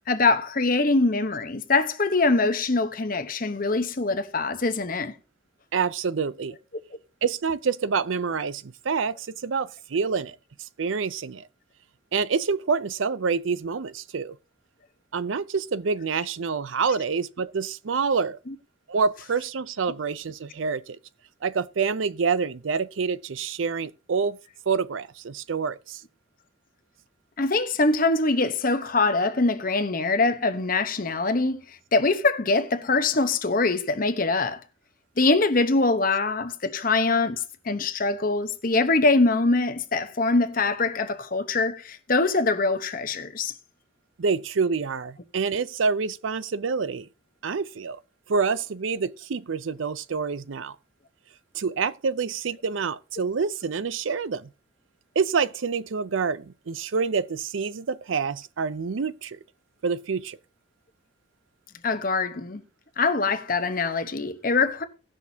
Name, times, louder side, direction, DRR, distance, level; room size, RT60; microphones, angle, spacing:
voice 1, 0.1-5.1 27.4-31.6 31.9-34.6 35.2-43.5 61.8-62.6 63.0-64.8, left 3 dB, 45° left, 1.0 m, -23 dB
voice 2, 5.7-6.6 7.2-11.5 12.1-14.4 15.1-18.4 18.9-21.0 21.4-24.4 24.7-26.0 44.2-47.1 47.4-48.0 48.3-50.8 51.5-54.5 55.2-59.4 59.8-60.4, right 5 dB, 90° right, 0.5 m, -27 dB
18.5 x 6.2 x 2.8 m
head